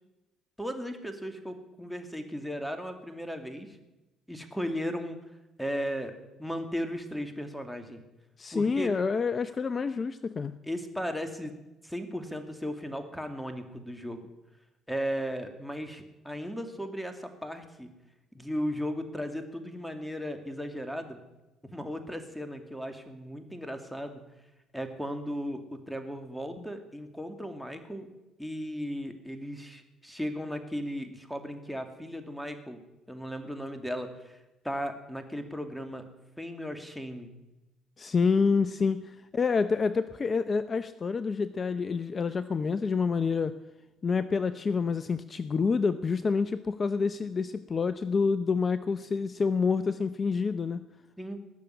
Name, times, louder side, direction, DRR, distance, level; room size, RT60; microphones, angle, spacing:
voice 1, 0.6-3.8 4.3-5.2 5.6-6.1 6.4-8.0 8.5-8.9 10.6-11.6 11.8-14.3 14.9-17.9 18.3-21.2 21.6-24.3 24.7-28.1 28.4-32.8 33.1-34.4 34.6-37.3 51.2-51.4, equal, ahead, 7 dB, 2.5 m, -36 dB
voice 2, 8.4-10.6 26.6-26.7 38.0-43.5 44.0-50.8, left 5 dB, 35° left, 13 dB, 0.7 m, -28 dB
19.5 x 6.9 x 9.8 m, 1.0 s
supercardioid pair, 70°, 0 cm